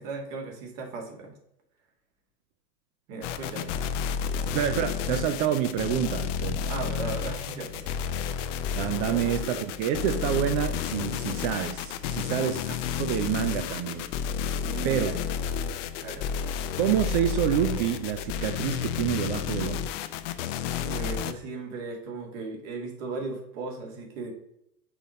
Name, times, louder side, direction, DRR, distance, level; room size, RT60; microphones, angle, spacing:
voice 1, 0.0-1.3 3.1-3.7 4.3-4.4 6.7-8.1 9.1-9.2 12.2-12.5 14.6-15.2 16.0-16.2 20.8-24.3, right 3 dB, 50° right, 2.0 m, -37 dB
sound 1, 3.2-21.3, left 7 dB, 50° left, 0.6 m, -31 dB
voice 2, 4.5-6.7 8.8-14.1 14.8-15.1 16.8-19.8, right 10 dB, 30° right, 0.4 m, -28 dB
5.6 x 4.0 x 4.1 m
hypercardioid pair, 95°, 48 cm